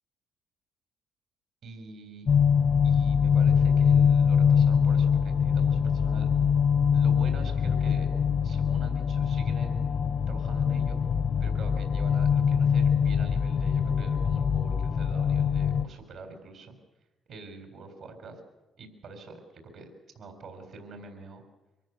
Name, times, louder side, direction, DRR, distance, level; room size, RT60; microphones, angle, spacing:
voice 1, 1.6-2.4 2.8-6.3 6.9-8.1 8.4-11.0 11.4-16.8 17.3-18.4 18.8-19.4 19.6-19.9 20.1-21.4, right 3 dB, 75° right, 5 dB, 3.7 m, -45 dB
sound 1, 2.3-15.9, left 7 dB, 55° left, 0.9 m, -23 dB
23.5 x 14.5 x 9.3 m, 1.0 s
cardioid pair, 90°, 0 cm